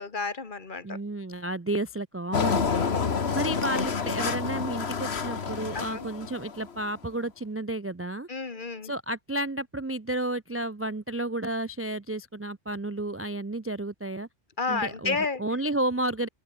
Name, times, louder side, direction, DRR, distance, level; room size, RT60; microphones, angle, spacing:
voice 1, 0.0-1.0 2.8-3.4 5.7-6.0 8.3-8.9 14.6-15.4, left 4 dB, 45° left, 1.7 m, -32 dB
voice 2, 0.8-2.9 3.3-8.3 8.8-14.3 14.7-16.3, right 1 dB, 20° right, 0.3 m, -32 dB
Engine, 2.3-6.8, left 5 dB, 65° left, 1.7 m, -28 dB
omnidirectional pair, 1.2 m